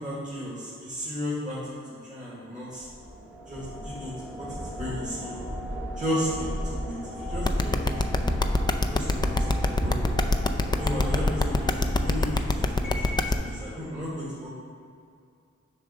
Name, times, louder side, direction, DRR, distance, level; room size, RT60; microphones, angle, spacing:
voice 1, 0.0-2.9 3.5-5.4 6.0-8.4 8.9-10.2 10.8-12.3 12.6-14.5, equal, 25° right, -7 dB, 1.5 m, -34 dB
sound 1, 2.8-13.4, equal, 5° right, 1.0 m, -33 dB
sound 2, 7.4-13.3, left 3 dB, 15° left, 0.4 m, -23 dB
6.8 x 3.8 x 6.3 m, 2.4 s
wide cardioid pair, 75°, 29 cm